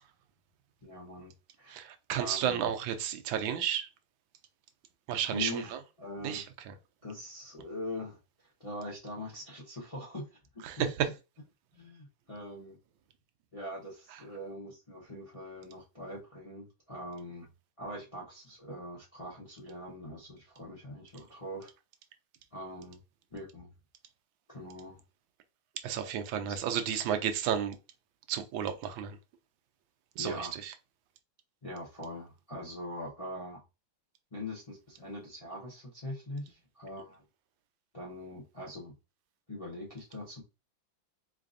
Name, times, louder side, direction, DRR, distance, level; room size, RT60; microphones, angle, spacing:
voice 1, 0.8-1.3 1.6-2.7 5.3-5.7 6.0-6.5 7.0-8.2 8.6-10.9 11.7-12.8 13.5-17.5 17.8-21.7 22.5-23.0 23.3-23.7 24.5-25.0 26.5-26.6 30.2-30.6 31.6-33.6 34.3-37.2 37.9-38.9 39.5-40.4, left 1 dB, 30° left, 0.6 m, -42 dB
voice 2, 1.7-3.9 5.1-5.8 6.2-6.7 10.6-11.1 25.8-27.8 28.3-29.2 30.2-30.7, right 9 dB, 80° right, 1.3 m, -32 dB
3.9 x 3.3 x 2.5 m
omnidirectional pair, 2.2 m